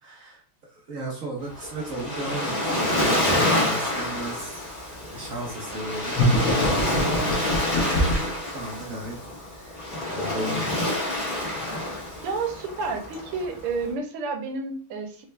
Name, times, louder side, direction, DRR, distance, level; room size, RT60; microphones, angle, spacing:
voice 1, 0.0-11.0, right 2 dB, 55° right, -2 dB, 0.9 m, -35 dB
Waves surf, 1.4-13.8, left 1 dB, 25° left, 1.2 m, -27 dB
sound 1, 6.1-8.4, left 1 dB, 70° left, 0.8 m, -24 dB
voice 2, 12.2-15.2, right 4 dB, 85° right, 5 dB, 1.6 m, -30 dB
4.1 x 2.4 x 3.2 m, 0.41 s
omnidirectional pair, 2.4 m